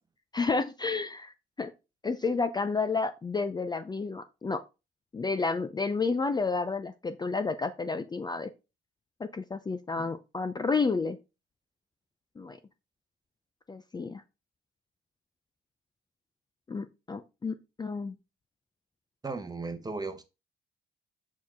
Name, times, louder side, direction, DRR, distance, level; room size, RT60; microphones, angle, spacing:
voice 1, 0.3-1.7 2.0-4.6 5.1-8.5 9.2-11.2 12.4-12.6 13.7-14.2 16.7-18.2, left 4 dB, 20° left, 0.4 m, -31 dB
voice 2, 19.2-20.2, right 3 dB, 20° right, 0.9 m, -35 dB
6.1 x 4.4 x 3.5 m
cardioid pair, 90°, 20 cm